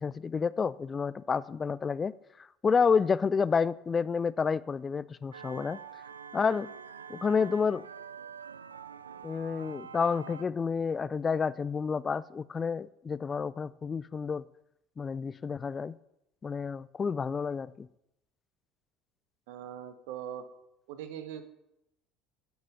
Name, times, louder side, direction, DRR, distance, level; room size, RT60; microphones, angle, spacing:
voice 1, 0.0-2.1 2.6-5.8 6.3-6.7 7.1-7.8 9.2-14.4 15.0-15.9 16.4-17.9, left 5 dB, 25° left, 18 dB, 0.4 m, -29 dB
sound 1, 5.3-10.4, right 7 dB, 85° right, 0.5 m, -46 dB
voice 2, 19.5-20.4 20.9-21.4, right 10 dB, 65° right, 9 dB, 1.4 m, -41 dB
14.5 x 6.2 x 7.2 m, 0.84 s
figure-of-eight pair, 65°, 0 cm